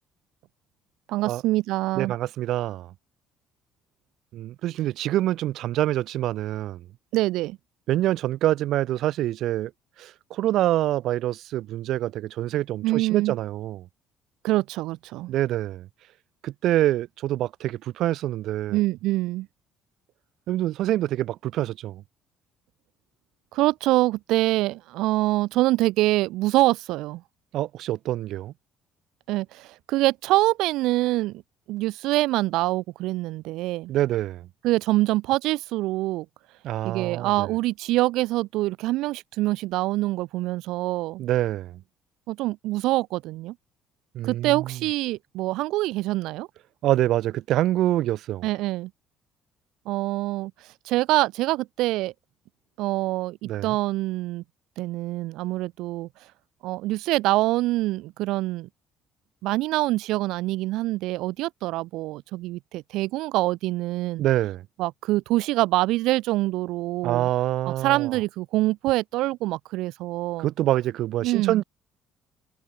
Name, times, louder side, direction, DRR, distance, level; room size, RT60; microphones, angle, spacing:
voice 1, 1.1-2.1 7.1-7.6 12.8-13.4 14.4-15.3 18.7-19.5 23.5-27.2 29.3-31.4 31.7-33.9 34.6-36.3 36.8-41.2 42.3-43.6 44.2-46.5 48.4-48.9 49.9-50.5 50.9-52.1 52.8-54.4 54.8-56.1 56.6-58.7 59.4-64.2 64.8-67.3 67.7-70.5 71.2-71.6, right 18 dB, 75° right, 1.8 m, -25 dB
voice 2, 2.0-2.9 4.3-6.8 7.9-9.7 10.0-13.9 15.3-15.9 16.4-18.8 20.5-22.0 27.5-28.5 33.9-34.5 36.6-37.5 41.2-41.8 44.1-44.7 46.8-48.5 53.4-53.8 64.2-64.6 67.0-68.1 70.4-71.6, right 14 dB, 60° right, 5.0 m, -26 dB
cardioid pair, 165°, 0 cm